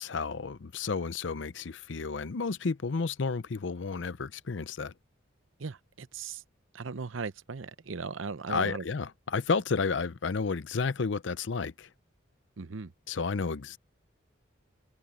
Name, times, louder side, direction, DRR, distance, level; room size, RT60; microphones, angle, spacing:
voice 1, 0.0-4.9 8.5-11.9 13.1-13.8, left 4 dB, 70° left, 0.6 m, -31 dB
voice 2, 5.6-6.4 6.7-8.8 12.6-12.9, right 4 dB, 85° right, 0.8 m, -38 dB
head